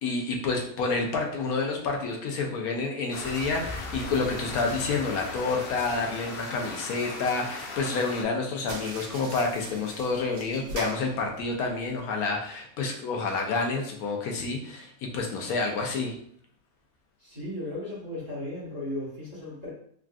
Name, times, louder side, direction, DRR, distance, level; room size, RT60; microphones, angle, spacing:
voice 1, 0.0-16.2, left 3 dB, 80° left, 2 dB, 1.1 m, -29 dB
sound 1, 3.1-8.2, left 3 dB, 65° left, 0.6 m, -37 dB
sound 2, 8.6-12.0, right 2 dB, 80° right, 1.2 m, -41 dB
voice 2, 17.2-19.7, left 1 dB, 15° right, -9 dB, 1.2 m, -36 dB
3.5 x 2.4 x 2.3 m, 0.63 s
omnidirectional pair, 1.6 m